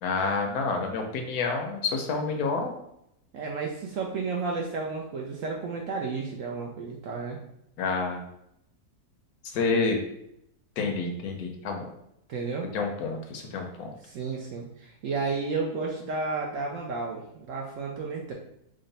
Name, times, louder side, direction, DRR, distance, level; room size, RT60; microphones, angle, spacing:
voice 1, 0.0-2.7 7.8-8.2 9.5-10.0 10.8-11.9 12.7-13.9, left 4 dB, 75° left, 4 dB, 1.0 m, -28 dB
voice 2, 3.3-7.4 12.3-12.7 14.0-18.3, right 4 dB, 70° right, -1 dB, 0.8 m, -32 dB
3.7 x 2.1 x 3.9 m, 0.78 s
omnidirectional pair, 1.7 m